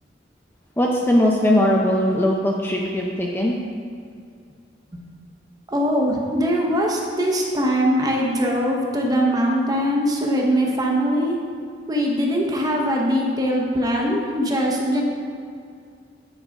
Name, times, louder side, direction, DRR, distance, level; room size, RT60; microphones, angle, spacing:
voice 1, 0.8-3.6, left 1 dB, 10° left, -2 dB, 0.5 m, -19 dB
voice 2, 5.7-11.4 11.9-15.0, equal, 20° right, -1 dB, 0.9 m, -21 dB
9.1 x 3.8 x 5.2 m, 2.3 s
head